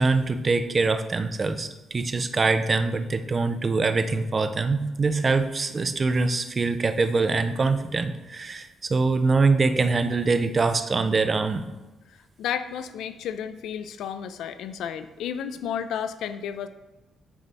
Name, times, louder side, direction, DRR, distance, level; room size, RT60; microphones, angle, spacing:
voice 1, 0.0-11.6, right 3 dB, 25° right, 10 dB, 0.3 m, -24 dB
voice 2, 12.1-16.7, left 8 dB, 85° left, 11 dB, 0.3 m, -32 dB
9.1 x 3.3 x 4.0 m, 1.1 s
cardioid pair, 170°, 0 cm